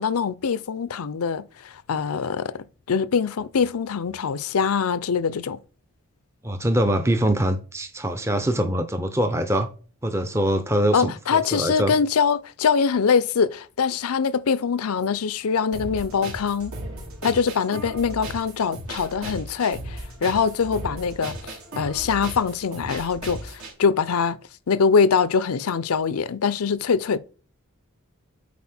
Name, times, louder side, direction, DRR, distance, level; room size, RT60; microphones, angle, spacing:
voice 1, 0.0-5.6 10.9-16.7 17.2-24.4 24.7-27.2, left 6 dB, 85° left, 0.5 m, -23 dB
voice 2, 6.4-9.7 10.0-11.9, right 1 dB, 10° right, 0.5 m, -23 dB
sound 1, 15.7-23.7, right 1 dB, 80° right, 3.0 m, -36 dB
8.4 x 4.1 x 4.3 m
head